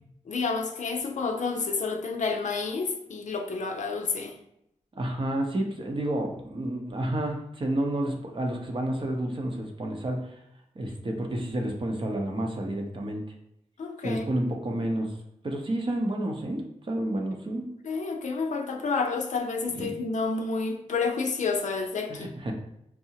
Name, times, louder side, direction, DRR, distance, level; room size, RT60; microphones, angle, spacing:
voice 1, 0.3-4.4 13.8-14.2 17.8-22.3, left 4 dB, 70° left, 3 dB, 0.5 m, -29 dB
voice 2, 4.9-10.4 10.8-13.2 14.0-15.1 15.4-17.7 19.7-19.9 22.1-22.5, right 1 dB, 40° right, 2 dB, 0.7 m, -30 dB
4.7 x 2.0 x 2.8 m, 0.78 s
wide cardioid pair, 85°, 13 cm